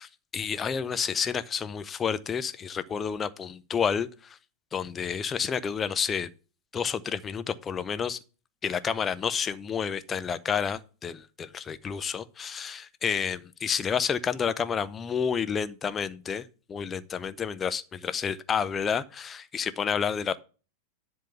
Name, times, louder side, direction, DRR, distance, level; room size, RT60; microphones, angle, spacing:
voice 1, 0.0-4.4 4.7-6.3 6.7-8.2 8.6-20.4, left 7 dB, 20° left, 0.6 m, -30 dB
10.5 x 3.7 x 6.7 m
figure-of-eight pair, 90°, 0 cm